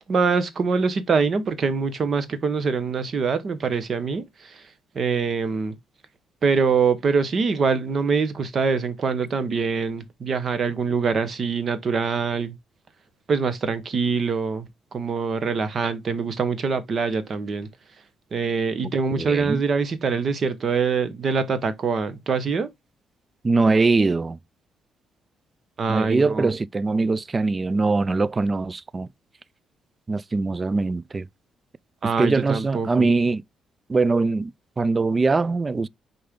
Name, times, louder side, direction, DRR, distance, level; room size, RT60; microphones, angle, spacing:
voice 1, 0.1-4.6 4.9-5.8 6.4-12.5 13.3-14.7 14.9-17.7 18.3-22.7 25.8-26.5 32.0-33.1, right 5 dB, 50° right, 1.2 m, -24 dB
voice 2, 19.2-19.6 23.4-24.4 25.9-29.1 30.1-31.3 32.2-33.4 33.9-34.5 34.8-35.9, right 3 dB, 30° right, 0.3 m, -22 dB
6.7 x 4.4 x 3.7 m
cardioid pair, 90°, 0 cm